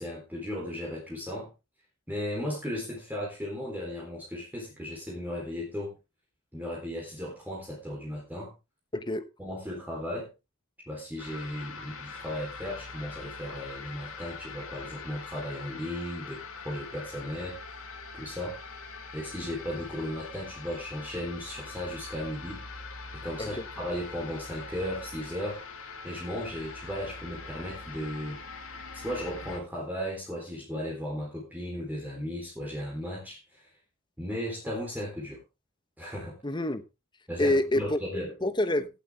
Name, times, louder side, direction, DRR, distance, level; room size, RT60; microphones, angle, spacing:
voice 1, 0.0-1.5 2.1-6.0 6.5-8.5 9.4-10.3 10.9-17.7 18.1-18.6 19.1-22.6 23.1-25.6 26.0-28.4 28.9-33.7 34.2-35.4 36.0-36.4 37.3-38.3, equal, 10° right, 3.9 m, -36 dB
voice 2, 8.9-9.2 23.4-23.6 36.4-36.8 37.4-38.0 38.4-38.9, left 1 dB, 20° left, 1.1 m, -27 dB
sound 1, 11.2-29.6, left 4 dB, 65° left, 2.6 m, -43 dB
16.5 x 8.3 x 3.6 m
head